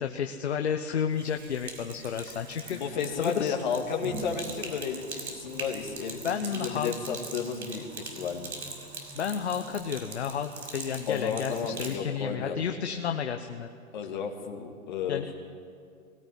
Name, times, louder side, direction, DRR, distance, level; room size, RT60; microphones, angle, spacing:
voice 1, 0.0-3.5 6.2-6.9 9.1-13.7 15.1-15.3, left 7 dB, 50° left, 6 dB, 1.0 m, -31 dB
Sink (filling or washing), 1.1-12.0, right 3 dB, 75° right, 5.5 m, -41 dB
voice 2, 2.7-6.2 6.5-8.5 11.1-12.6 13.9-15.4, left 6 dB, 30° left, 2 dB, 2.1 m, -33 dB
21.5 x 17.0 x 10.0 m, 2.3 s
hypercardioid pair, 170°, 43 cm